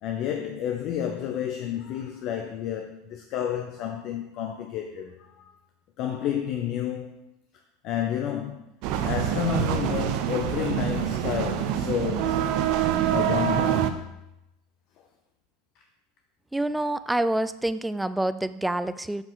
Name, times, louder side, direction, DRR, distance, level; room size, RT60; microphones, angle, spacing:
voice 1, 0.0-5.5 6.0-7.3 7.8-8.6 9.0-12.5 13.1-14.0, left 9 dB, 55° left, 0.6 m, -30 dB
sound 1, 8.8-13.9, right 10 dB, 60° right, 0.6 m, -25 dB
voice 2, 16.5-19.2, right 1 dB, 5° right, 0.4 m, -27 dB
6.9 x 5.7 x 4.0 m
hypercardioid pair, 90°, 0 cm